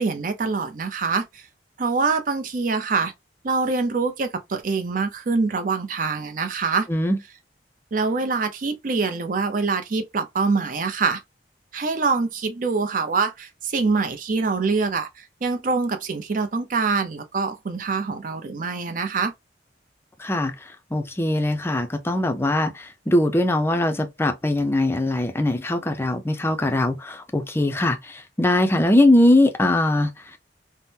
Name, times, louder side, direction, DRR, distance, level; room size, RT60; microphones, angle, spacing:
voice 1, 0.0-1.4 1.8-3.1 3.4-6.9 7.9-11.2 11.7-19.3, right 4 dB, 50° right, 0.5 m, -24 dB
voice 2, 20.2-20.5 20.9-30.1, left 1 dB, 15° left, 0.4 m, -21 dB
3.6 x 2.0 x 2.7 m
head